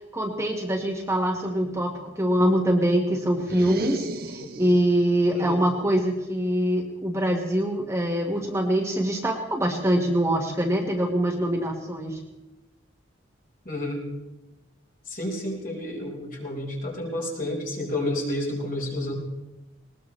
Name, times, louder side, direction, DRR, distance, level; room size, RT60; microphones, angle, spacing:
voice 1, 0.1-12.2, right 1 dB, 15° right, 0 dB, 1.4 m, -24 dB
sound 1, 3.4-5.0, right 2 dB, 50° right, 0.6 m, -35 dB
voice 2, 13.6-14.0 15.1-19.1, left 1 dB, 45° left, -2 dB, 4.8 m, -30 dB
20.5 x 20.0 x 3.2 m, 1.0 s
head